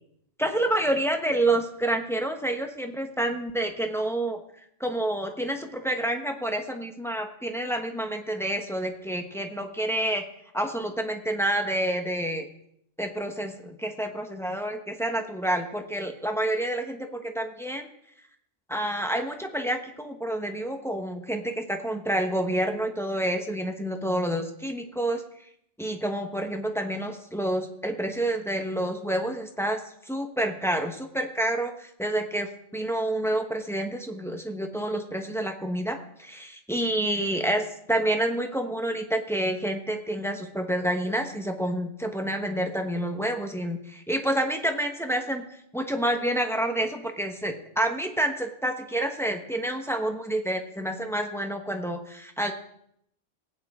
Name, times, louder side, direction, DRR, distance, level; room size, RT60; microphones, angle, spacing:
voice 1, 0.4-4.4 4.8-10.2 10.5-12.5 13.0-17.9 18.7-25.2 25.8-52.5, right 1 dB, ahead, 4 dB, 1.0 m, -28 dB
18.5 x 9.1 x 3.7 m, 0.72 s
omnidirectional pair, 1.2 m